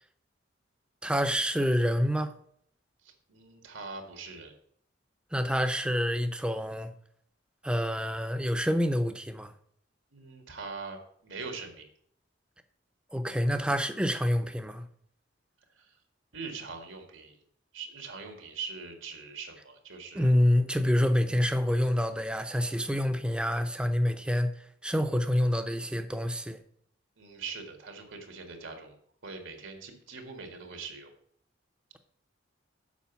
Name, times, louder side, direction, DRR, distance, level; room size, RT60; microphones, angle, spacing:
voice 1, 1.0-2.3 5.3-6.9 7.6-9.5 13.1-14.8 20.1-24.5 24.8-26.6, equal, 5° right, 0.6 m, -27 dB
voice 2, 3.0-4.5 10.1-11.8 15.8-15.9 16.3-17.4 17.7-20.3 27.2-29.0 29.2-31.1, right 4 dB, 85° right, 1.8 m, -42 dB
7.2 x 5.0 x 6.9 m
head